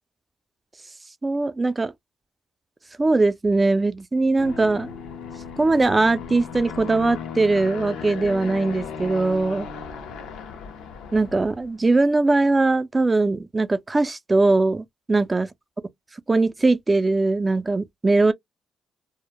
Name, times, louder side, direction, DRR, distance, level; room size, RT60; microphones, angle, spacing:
voice 1, 1.2-1.9 3.0-4.9 5.6-9.7 11.1-15.5 16.3-18.3, right 3 dB, 20° right, 0.3 m, -21 dB
Aircraft, 4.4-11.7, left 6 dB, 90° left, 0.6 m, -36 dB
2.1 x 2.0 x 2.9 m
cardioid pair, 90°, 0 cm